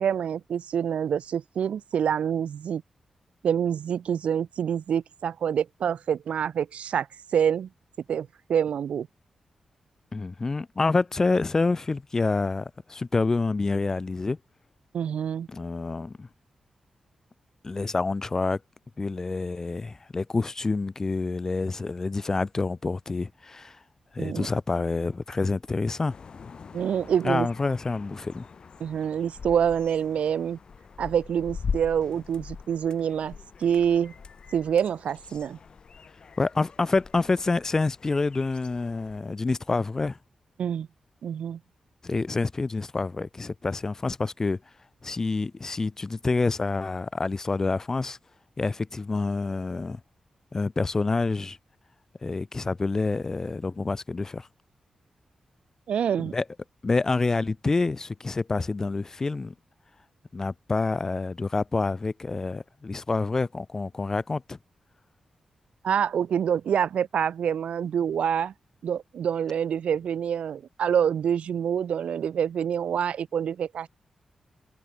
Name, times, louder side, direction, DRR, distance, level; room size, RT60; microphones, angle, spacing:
voice 1, 0.0-2.8 3.4-7.1 7.3-7.7 8.1-9.1 14.9-15.5 24.2-24.5 26.7-27.5 28.8-30.6 31.0-33.3 33.6-34.1 34.5-35.6 40.6-40.9 41.2-41.6 55.9-56.3 65.8-68.5 68.8-73.9, right 8 dB, 80° right, 1.2 m, -26 dB
voice 2, 10.1-14.4 15.5-16.3 17.6-18.6 19.0-23.8 24.1-26.2 27.2-28.5 36.4-40.2 42.0-44.6 45.0-48.2 48.6-50.0 50.5-51.6 52.2-54.5 56.3-56.4 56.8-59.5 60.3-64.6, left 3 dB, 25° left, 0.4 m, -27 dB
sound 1, 26.1-39.2, left 5 dB, 45° left, 4.2 m, -41 dB
wide cardioid pair, 160°, 2 cm